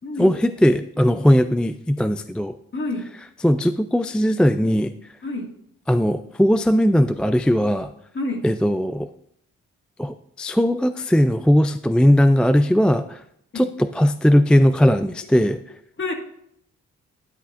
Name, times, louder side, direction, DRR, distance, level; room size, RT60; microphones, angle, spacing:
voice 1, 0.2-2.6 3.4-4.9 5.9-7.9 8.4-9.1 10.0-13.2 13.5-13.7 14.0-15.6, equal, 5° left, 10 dB, 0.3 m, -18 dB
voice 2, 2.7-3.1 5.2-5.5 8.1-8.5 13.5-13.7 16.0-16.1, left 2 dB, 40° left, 2 dB, 2.0 m, -28 dB
11.5 x 9.9 x 2.5 m, 0.74 s
cardioid pair, 60°, 30 cm